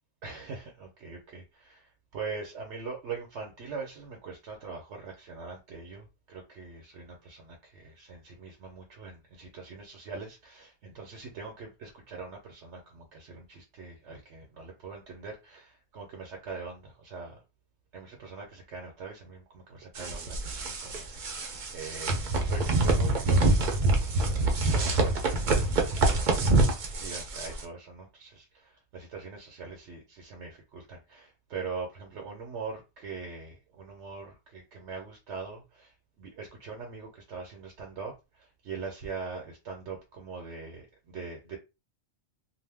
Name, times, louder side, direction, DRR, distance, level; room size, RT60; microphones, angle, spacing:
voice 1, 0.2-17.4 17.9-23.4 24.7-26.5 27.0-35.9 36.2-41.6, right 4 dB, 85° right, 1.0 m, -42 dB
sound 1, 20.0-27.6, right 2 dB, 50° right, 0.7 m, -26 dB
2.5 x 2.2 x 3.3 m
omnidirectional pair, 1.1 m